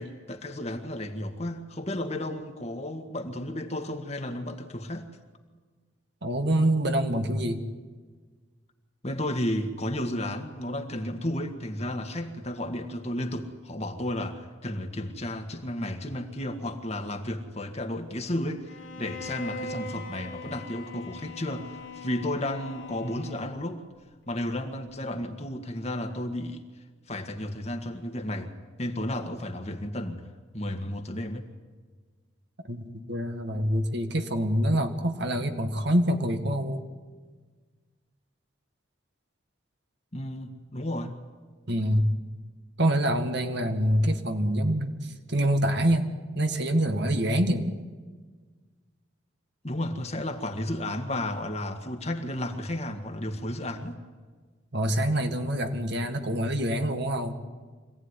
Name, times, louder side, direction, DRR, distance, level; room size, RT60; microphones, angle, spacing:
voice 1, 0.0-5.1 9.0-23.8 24.3-26.6 27.1-28.5 28.8-30.3 30.5-31.5 40.1-41.1 49.6-54.0, left 1 dB, 35° left, 5 dB, 1.8 m, -33 dB
voice 2, 6.2-7.6 32.6-36.8 41.7-42.1 42.8-47.8 54.7-57.3, right 1 dB, 55° right, 6 dB, 1.9 m, -26 dB
Bowed string instrument, 18.7-23.8, left 3 dB, 85° left, 2.7 m, -41 dB
25.5 x 17.5 x 9.8 m, 1.5 s
head